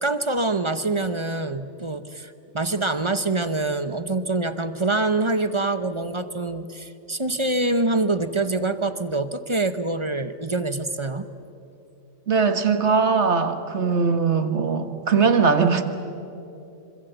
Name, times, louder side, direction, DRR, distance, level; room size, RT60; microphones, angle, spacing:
voice 1, 0.0-11.3, right 2 dB, 25° right, 11 dB, 0.8 m, -25 dB
voice 2, 12.3-15.8, right 5 dB, 55° right, 9 dB, 1.7 m, -20 dB
26.0 x 26.0 x 8.1 m, 2.7 s
omnidirectional pair, 1.4 m